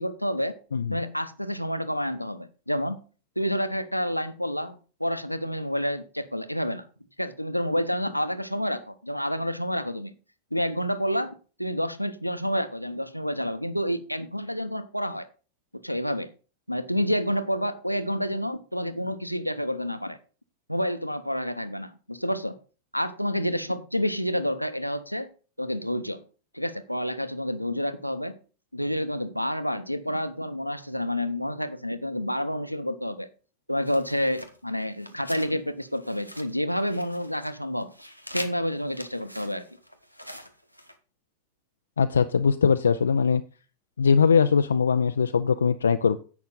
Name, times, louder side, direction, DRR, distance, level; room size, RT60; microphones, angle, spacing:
voice 1, 0.0-0.6 0.9-3.0 3.4-6.9 7.2-10.1 10.5-11.3 11.6-15.3 15.8-16.3 16.7-20.2 20.7-22.6 22.9-25.3 25.6-26.2 26.5-28.4 28.7-33.3 33.7-37.9 38.3-39.7, equal, 90° left, 0.9 m, -29 dB
sound 1, 33.8-35.5 35.8-37.5 37.8-40.9, equal, 90° right, 1.2 m, -43 dB
voice 2, 42.0-43.4 44.0-46.2, left 6 dB, 70° left, 0.5 m, -21 dB
10.5 x 8.2 x 3.9 m
figure-of-eight pair, 90°, 0 cm